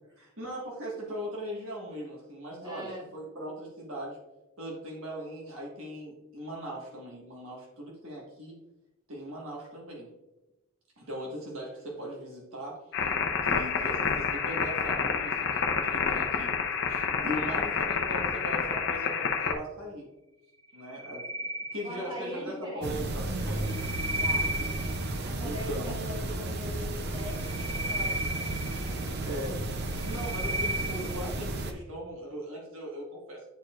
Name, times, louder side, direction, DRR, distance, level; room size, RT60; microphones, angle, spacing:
voice 1, 0.2-4.2 4.6-8.6 9.1-10.1 11.0-13.1 13.4-16.5 16.9-20.1 20.7-23.8 25.4-25.9 29.2-29.7 30.0-33.4, equal, 65° right, -3 dB, 1.6 m, -39 dB
voice 2, 2.6-3.0 21.8-23.1 24.0-24.5 25.2-28.3 28.8-29.2, left 1 dB, 20° right, -5 dB, 2.3 m, -42 dB
sound 1, 12.9-19.5, left 6 dB, 55° left, 0.7 m, -28 dB
sound 2, 20.7-22.4 23.4-25.2 27.2-29.3 29.8-31.3, right 1 dB, 80° right, 1.4 m, -34 dB
sound 3, 22.8-31.7, right 2 dB, 50° right, 0.6 m, -33 dB
10.0 x 4.6 x 2.5 m, 0.98 s
head